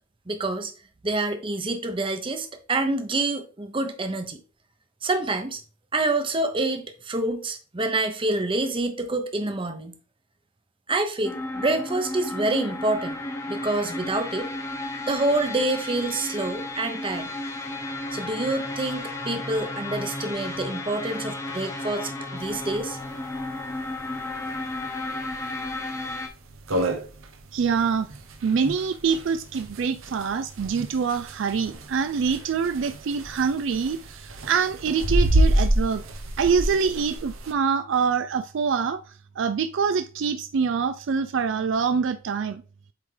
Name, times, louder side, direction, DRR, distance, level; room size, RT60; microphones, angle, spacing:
voice 1, 0.3-0.7 1.0-4.4 5.0-5.6 5.9-10.0 10.9-13.2 13.5-14.5 15.1-17.3 18.1-23.0, right 2 dB, 25° right, 0.8 m, -27 dB
sound 1, 11.2-26.3, left 2 dB, 15° left, 0.9 m, -33 dB
sound 2, 22.5-22.6 22.8-22.9 23.3-23.4 24.0-24.2 24.7-24.8 25.3-25.4 25.7-25.8 26.2-26.3 26.5-37.5, right 1 dB, 85° right, 0.9 m, -27 dB
voice 2, 27.5-28.1 28.4-36.0 36.4-39.0 39.4-42.6, right 6 dB, 65° right, 0.4 m, -25 dB
8.1 x 3.6 x 3.3 m
head